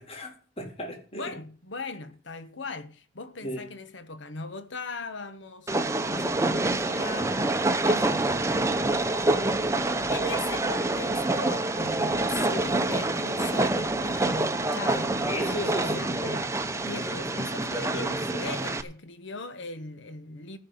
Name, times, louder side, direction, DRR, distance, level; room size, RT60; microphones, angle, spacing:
voice 1, 0.0-1.3 3.4-3.7 15.2-16.2, equal, 30° left, 2.2 m, -35 dB
voice 2, 1.1-8.3 9.1-9.4 10.1-20.6, left 3 dB, 70° left, 1.1 m, -39 dB
Train, 5.7-18.8, right 2 dB, 15° right, 0.7 m, -26 dB
14.5 x 5.4 x 7.6 m
head